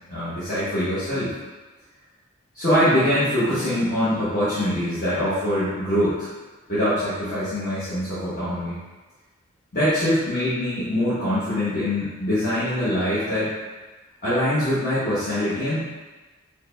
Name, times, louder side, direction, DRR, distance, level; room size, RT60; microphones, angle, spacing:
voice 1, 0.1-1.3 2.5-6.3 6.7-8.7 9.7-13.5 14.2-15.8, equal, 40° left, -13 dB, 1.0 m, -23 dB
Strum, 3.4-7.4, left 1 dB, 5° left, 0.5 m, -44 dB
4.7 x 2.2 x 3.2 m, 1.2 s
head